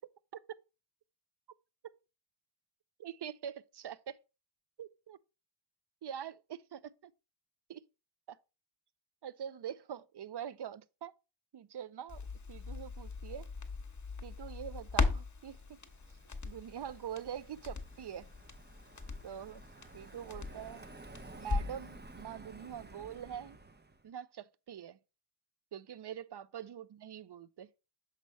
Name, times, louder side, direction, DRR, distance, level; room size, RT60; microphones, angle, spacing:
voice 1, 3.0-4.2 4.8-5.2 6.0-7.1 7.7-7.8 8.3-8.4 9.2-11.1 11.5-12.2 12.5-13.5 14.2-15.6 16.4-18.3 19.2-19.6 19.9-20.8 21.4-23.6 24.0-25.0 25.7-27.7, right 9 dB, 55° right, 0.5 m, -44 dB
Crackle, 12.1-21.9 22.2-22.3, left 4 dB, 35° left, 0.9 m, -39 dB
Car passing by, 15.5-24.1, right 2 dB, 20° right, 0.7 m, -54 dB
6.6 x 3.2 x 5.4 m
wide cardioid pair, 65°, 49 cm